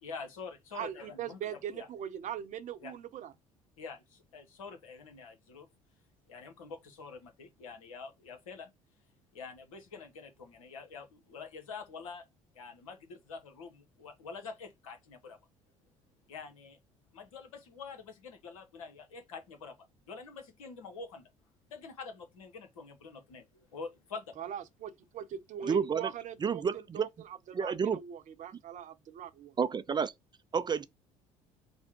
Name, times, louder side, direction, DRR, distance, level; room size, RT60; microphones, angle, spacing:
voice 1, 0.0-1.9 2.8-2.9 3.8-5.7 6.3-8.7 9.3-12.2 12.5-15.4 16.3-16.8 17.1-21.2 21.7-24.3, left 5 dB, 75° left, 1.0 m, -46 dB
voice 2, 0.7-3.3 24.4-29.6, right 9 dB, 45° right, 0.8 m, -41 dB
voice 3, 25.6-26.1 26.4-27.1 27.5-28.0 29.6-30.1 30.5-30.9, right 6 dB, 25° right, 0.4 m, -30 dB
5.3 x 2.1 x 4.4 m
figure-of-eight pair, 55°, 18 cm